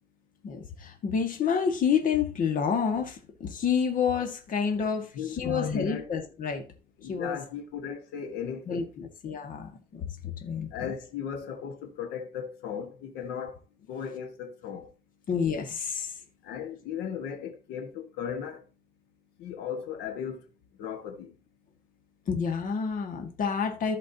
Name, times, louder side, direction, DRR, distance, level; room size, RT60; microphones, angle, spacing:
voice 1, 0.4-6.6 7.1-7.4 8.7-10.1 10.4-10.7 15.3-16.2 22.3-24.0, left 6 dB, 50° left, 1.9 m, -29 dB
voice 2, 5.1-6.3 7.0-8.9 10.7-13.6 13.9-14.9 16.4-18.6 19.4-20.4 20.8-21.3, left 7 dB, 80° left, 1.6 m, -36 dB
15.0 x 5.1 x 2.8 m
cardioid pair, 110°, 17 cm